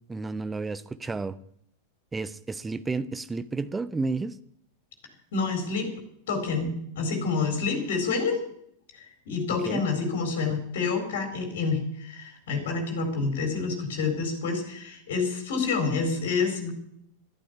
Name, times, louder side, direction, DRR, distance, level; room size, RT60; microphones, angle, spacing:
voice 1, 0.1-1.4 2.1-4.4 9.7-9.9, right 3 dB, 10° right, 15 dB, 0.8 m, -31 dB
voice 2, 5.3-5.9 6.3-8.4 8.9-16.7, left 4 dB, 55° left, 5 dB, 4.4 m, -28 dB
12.5 x 11.5 x 8.5 m, 0.71 s
figure-of-eight pair, 90°, 0 cm